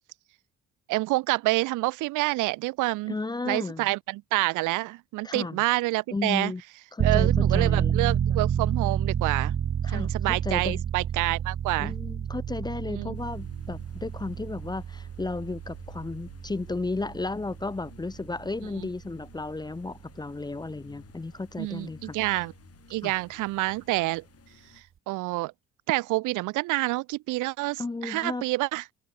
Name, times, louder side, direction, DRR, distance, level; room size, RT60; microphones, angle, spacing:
voice 1, 0.9-3.1 3.5-6.5 7.0-9.6 9.9-11.9 12.9-13.2 18.8-18.9 21.6-22.5 22.9-24.2 25.1-25.5 25.9-28.8, right 21 dB, 90° right, 0.4 m, -28 dB
voice 2, 3.1-3.9 5.2-5.6 6.1-6.6 6.9-8.0 9.8-10.8 11.8-22.1 23.0-23.1 27.8-28.4, left 3 dB, 15° left, 0.6 m, -34 dB
sound 1, 7.0-19.5 19.9-20.0, right 9 dB, 45° right, 0.9 m, -29 dB
sound 2, 13.1-24.8, left 8 dB, 55° left, 4.4 m, -55 dB
cardioid pair, 90°, 30 cm